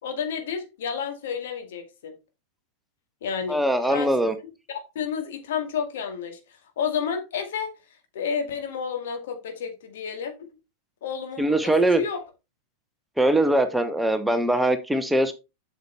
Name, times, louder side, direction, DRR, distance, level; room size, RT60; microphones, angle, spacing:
voice 1, 0.0-2.1 3.2-3.6 3.9-4.1 4.7-7.7 8.1-10.3 11.0-12.2, left 7 dB, 60° left, 5 dB, 1.9 m, -31 dB
voice 2, 3.5-4.3 11.4-12.0 13.2-15.3, right 1 dB, 5° right, 9 dB, 0.8 m, -21 dB
7.9 x 6.6 x 3.2 m, 0.27 s
figure-of-eight pair, 90°, 0 cm